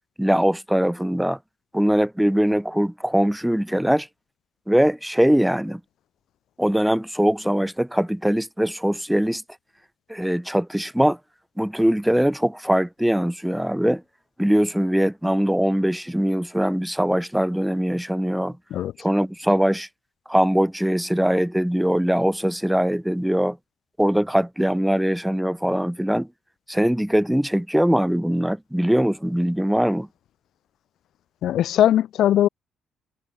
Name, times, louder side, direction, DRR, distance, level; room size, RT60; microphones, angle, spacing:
voice 1, 0.2-1.4 1.7-4.1 4.7-5.8 6.6-9.4 10.1-11.2 11.6-14.0 14.4-18.6 19.0-19.9 20.3-23.6 24.0-26.3 26.7-30.1, equal, 5° right, 2.1 m, -21 dB
voice 2, 31.4-32.5, left 11 dB, 75° left, 1.1 m, -19 dB
cardioid pair, 90°, 0 cm